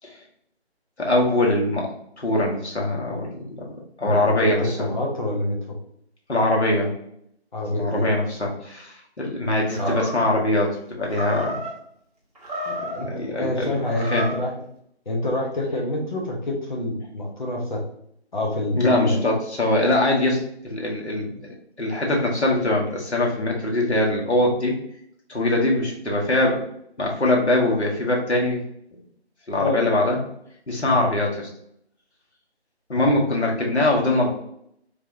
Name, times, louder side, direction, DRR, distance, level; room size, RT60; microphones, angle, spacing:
voice 1, 1.0-1.9 2.2-4.9 6.3-6.9 7.7-11.6 12.7-13.8 14.1-14.2 18.8-24.7 25.3-26.6 27.0-28.6 29.5-30.2 30.7-31.5 32.9-34.3, left 1 dB, 85° left, -2 dB, 1.4 m, -22 dB
voice 2, 4.0-5.8 7.5-8.1 9.8-10.0 12.9-13.1 13.4-14.5 15.0-17.8 18.3-19.2 29.6-29.9 30.8-31.1 32.9-33.2, left 1 dB, 45° left, -1 dB, 1.0 m, -27 dB
Animal, 9.7-10.4 11.1-11.7 12.3-13.1 13.8-14.5, equal, 35° right, 1.0 m, -31 dB
3.4 x 3.3 x 2.6 m, 0.71 s
figure-of-eight pair, 155°, 33 cm